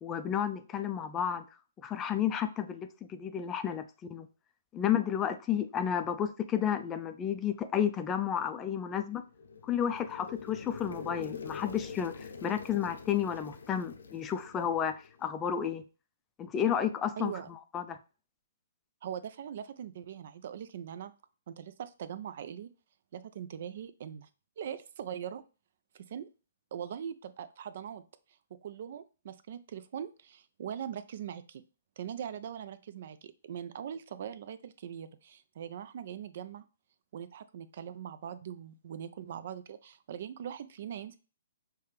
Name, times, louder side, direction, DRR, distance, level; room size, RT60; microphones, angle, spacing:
voice 1, 0.0-1.4 1.8-4.3 4.7-9.2 9.6-15.8 16.4-17.3 17.7-18.0, left 9 dB, 20° left, 0.4 m, -32 dB
sound 1, 9.2-15.3, left 5 dB, 80° left, 0.6 m, -45 dB
voice 2, 17.2-17.5 19.0-21.1 21.5-22.7 23.1-24.3 24.6-25.4 25.9-26.3 26.7-28.0 28.6-31.6 32.0-36.6 37.1-41.2, right 9 dB, 55° right, 0.4 m, -41 dB
5.6 x 2.2 x 3.3 m
hypercardioid pair, 140°, 0 cm